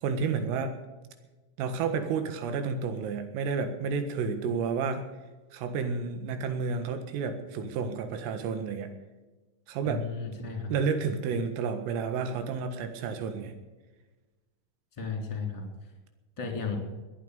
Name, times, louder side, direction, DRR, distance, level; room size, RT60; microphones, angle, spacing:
voice 1, 0.0-0.8 1.6-5.1 5.5-8.9 9.7-10.1 10.7-13.5, right 5 dB, 90° right, 8 dB, 4.2 m, -31 dB
voice 2, 9.8-10.7 15.0-15.6 16.4-16.8, left 5 dB, 10° left, 2 dB, 2.4 m, -34 dB
20.5 x 9.2 x 6.6 m, 1.2 s
omnidirectional pair, 5.8 m